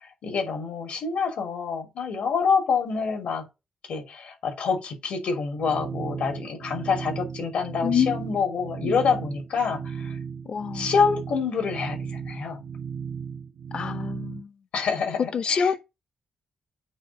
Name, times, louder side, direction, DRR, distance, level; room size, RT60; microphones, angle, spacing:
voice 1, 0.2-3.4 3.9-10.2 10.7-12.6 14.7-15.7, left 5 dB, 85° left, 3.1 m, -27 dB
sound 1, 5.6-14.4, right 6 dB, 90° right, 2.0 m, -35 dB
voice 2, 7.8-8.2 8.8-9.0 10.5-10.9 13.7-14.5 15.3-15.8, left 7 dB, 50° left, 0.7 m, -26 dB
8.7 x 3.1 x 6.0 m
wide cardioid pair, 130°, 2 cm